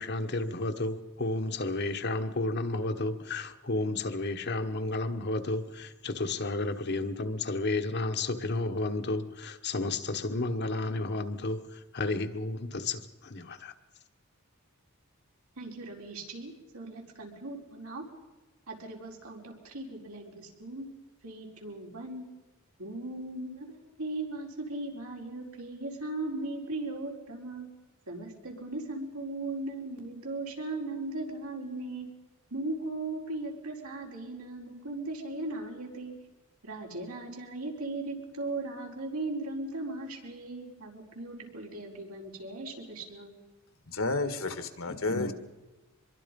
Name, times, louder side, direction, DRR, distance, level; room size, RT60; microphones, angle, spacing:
voice 1, 0.0-13.7 44.9-45.3, left 2 dB, 50° left, 1.3 m, -32 dB
voice 2, 15.6-18.1 18.7-20.9 21.2-22.3 22.8-27.7 28.1-32.1 32.5-36.1 36.6-43.3, right 2 dB, 85° right, 4.8 m, -38 dB
voice 3, 43.9-45.3, left 3 dB, 70° left, 1.8 m, -31 dB
25.0 x 22.5 x 5.4 m
head